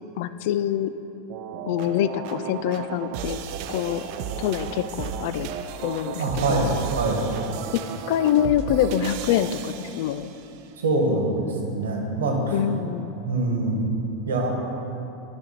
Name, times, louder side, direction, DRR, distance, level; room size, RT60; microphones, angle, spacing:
voice 1, 0.2-0.9 1.7-4.0 4.4-5.5 5.8-6.7 7.7-10.3 12.5-13.1, left 10 dB, 60° left, 13 dB, 0.3 m, -25 dB
sound 1, 1.3-10.5, right 7 dB, 55° right, 0.5 m, -34 dB
voice 2, 6.2-7.3 10.8-12.4 13.2-13.9 14.3-14.5, right 2 dB, 75° right, 0 dB, 1.4 m, -24 dB
11.0 x 5.1 x 4.3 m, 2.8 s
figure-of-eight pair, 85°, 0 cm